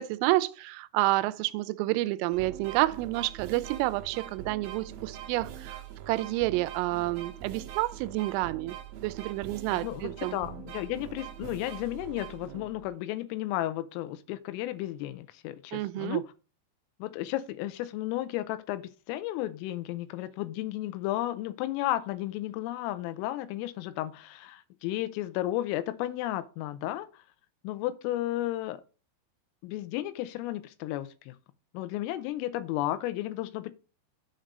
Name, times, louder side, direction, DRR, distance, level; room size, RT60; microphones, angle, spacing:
voice 1, 0.0-8.8 9.0-10.4 15.7-16.2, right 18 dB, 85° right, 3.1 m, -29 dB
sound 1, 2.3-12.9, right 10 dB, 65° right, 2.5 m, -43 dB
voice 2, 9.7-16.2 17.0-27.2 27.6-28.8 29.6-31.4 31.7-33.7, left 15 dB, 85° left, 3.3 m, -33 dB
7.4 x 5.2 x 5.2 m
omnidirectional pair, 5.9 m